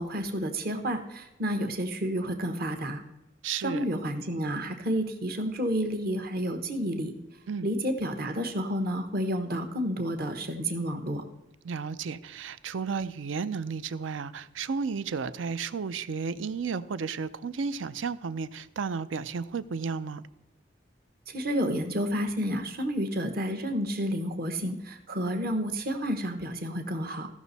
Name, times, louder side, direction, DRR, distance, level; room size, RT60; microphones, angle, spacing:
voice 1, 0.0-3.0 3.6-7.1 7.6-11.2 21.3-27.3, equal, 50° right, 1.1 m, -30 dB
voice 2, 3.4-3.8 7.5-7.7 11.6-20.3, right 5 dB, 80° right, 0.5 m, -33 dB
15.0 x 6.1 x 4.1 m
head